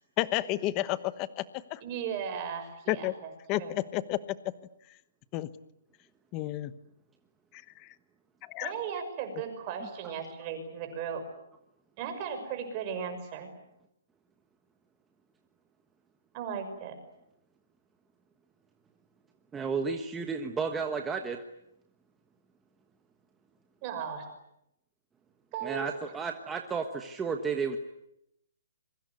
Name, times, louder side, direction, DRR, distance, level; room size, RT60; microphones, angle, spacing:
voice 1, 0.2-1.8 2.9-3.1 3.5-4.4 5.3-5.5 6.3-6.7 7.5-7.9 8.4-8.7, left 16 dB, 20° left, 15 dB, 1.0 m, -31 dB
voice 2, 1.8-3.1 3.6-3.7 8.6-11.2 12.0-13.5 16.3-16.9 23.8-24.3 25.5-25.8, right 7 dB, 25° right, 6 dB, 6.2 m, -36 dB
voice 3, 19.5-21.4 25.6-27.8, right 5 dB, 10° right, 4 dB, 1.3 m, -32 dB
26.5 x 23.5 x 9.6 m, 0.81 s
hypercardioid pair, 170°, 0 cm